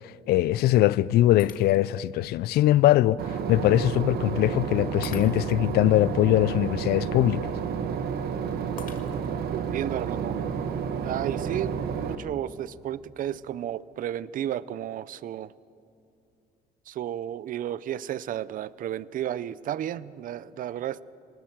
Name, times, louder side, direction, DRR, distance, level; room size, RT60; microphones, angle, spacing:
voice 1, 0.0-7.5, left 15 dB, 70° left, 0.4 m, -22 dB
Shatter, 1.4-2.1 2.7-2.8 5.0-5.8 8.8-9.5, left 8 dB, 55° left, 1.9 m, -45 dB
Boat Water vehicle / Engine, 3.2-12.2, right 7 dB, 70° right, 1.3 m, -31 dB
voice 2, 9.5-10.4 11.0-15.5 16.9-21.0, right 11 dB, 55° right, 0.6 m, -33 dB
20.5 x 19.5 x 7.4 m
cardioid pair, 110°, 17 cm